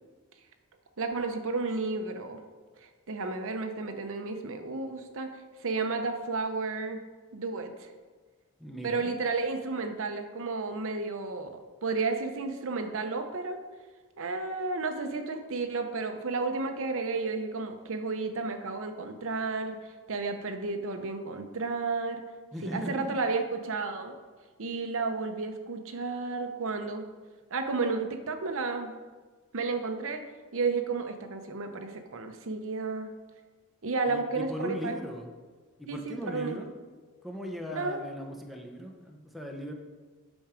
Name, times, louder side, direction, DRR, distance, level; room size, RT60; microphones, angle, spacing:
voice 1, 1.0-2.4 2.8-7.0 7.3-7.9 8.8-11.5 11.8-13.6 14.2-22.2 22.6-24.1 24.6-27.0 27.5-28.9 29.5-30.2 30.5-33.1 33.8-35.0 35.9-36.6 37.7-38.0, right 3 dB, 60° right, 6 dB, 0.8 m, -32 dB
voice 2, 8.6-9.1 22.5-23.2 34.1-35.3 35.8-36.7 37.2-39.7, equal, ahead, 1 dB, 0.9 m, -38 dB
8.8 x 6.3 x 5.0 m, 1.4 s
head